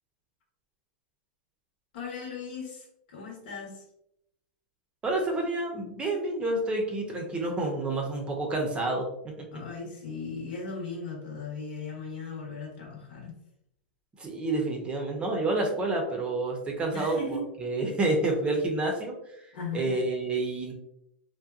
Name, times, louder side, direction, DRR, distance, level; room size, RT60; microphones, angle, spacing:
voice 1, 1.9-3.8 9.5-13.4 16.9-17.5 19.5-19.9, left 3 dB, 70° left, -1 dB, 1.0 m, -37 dB
voice 2, 5.0-9.5 14.2-17.2 17.6-19.2 19.7-20.7, right 2 dB, 20° right, 1 dB, 0.6 m, -29 dB
2.7 x 2.1 x 2.3 m, 0.78 s
hypercardioid pair, 125°, 5 cm